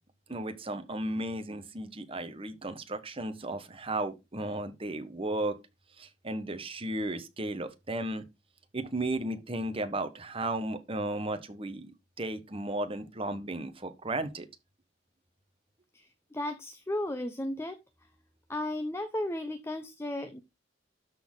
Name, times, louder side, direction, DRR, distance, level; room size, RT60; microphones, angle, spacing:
voice 1, 0.3-5.6 6.0-8.2 8.7-11.9 12.2-14.5, right 1 dB, 30° right, 1.3 m, -34 dB
voice 2, 15.9-17.8 18.5-20.4, left 1 dB, 15° left, 0.7 m, -34 dB
12.5 x 4.3 x 3.8 m
head